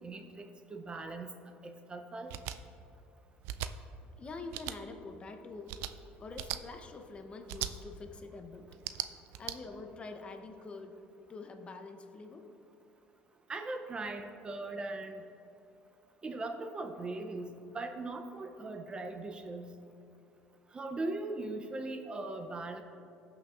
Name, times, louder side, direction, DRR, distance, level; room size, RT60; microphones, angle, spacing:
voice 1, 0.0-1.3 1.6-2.3 13.5-15.2 16.2-19.7 20.7-22.8, right 2 dB, 25° right, 6 dB, 0.6 m, -39 dB
sound 1, 2.3-2.6 3.4-3.7 4.5-4.8 5.7-5.9 6.4-6.6 7.5-7.7 8.7-9.6, right 13 dB, 80° right, 0.4 m, -37 dB
voice 2, 4.2-5.8 6.2-8.8 9.4-11.0 11.3-12.5, left 3 dB, 30° left, 6 dB, 0.7 m, -46 dB
16.0 x 6.0 x 2.5 m, 2.8 s
cardioid pair, 110°, 4 cm